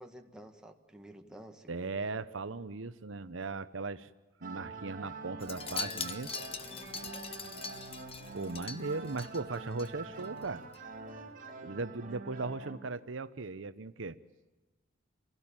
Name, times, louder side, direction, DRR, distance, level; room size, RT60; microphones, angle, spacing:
voice 1, 0.0-2.2 6.6-7.2, right 1 dB, 5° right, 3 dB, 1.8 m, -52 dB
voice 2, 1.7-4.1 4.4-6.3 8.3-10.6 11.6-14.2, right 3 dB, 75° right, 13 dB, 0.8 m, -38 dB
sound 1, 4.4-12.7, right 3 dB, 45° right, 4.3 m, -46 dB
Wind chime, 5.4-9.9 10.2-10.5 10.7-10.8, left 5 dB, 30° left, 1.3 m, -41 dB
27.0 x 17.0 x 8.9 m, 1.2 s
head